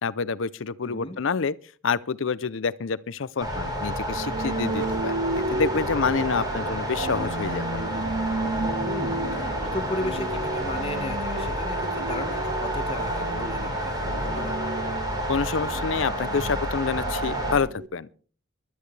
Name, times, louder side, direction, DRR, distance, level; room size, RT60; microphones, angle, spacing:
voice 1, 0.0-1.5 1.8-7.8 15.3-18.1, left 5 dB, 65° left, 0.5 m, -28 dB
voice 2, 0.8-1.2 8.8-13.9 14.2-14.6, left 1 dB, 25° left, 1.5 m, -35 dB
sound 1, 3.4-17.6, right 1 dB, 20° right, 4.2 m, -30 dB
sound 2, 4.1-17.9, right 2 dB, 50° right, 1.2 m, -33 dB
20.5 x 12.5 x 3.3 m
head